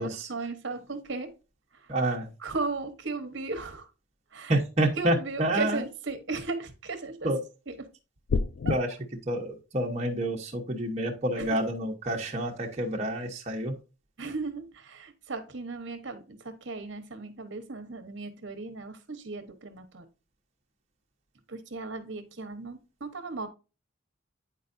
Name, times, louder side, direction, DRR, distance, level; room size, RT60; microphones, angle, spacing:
voice 1, 0.0-1.3 1.7-1.9 2.4-3.9 4.3-4.6 5.0-7.3 7.7-7.9 8.6-8.7 11.4-11.5 14.2-20.1 21.5-23.5, right 3 dB, 60° right, 1.0 m, -36 dB
voice 2, 1.9-2.3 4.5-5.8 7.2-7.4 8.7-8.9 9.2-13.7, right 1 dB, 30° right, 1.0 m, -28 dB
sound 1, 8.3-8.8, left 4 dB, 55° left, 0.3 m, -26 dB
9.4 x 4.4 x 2.6 m
head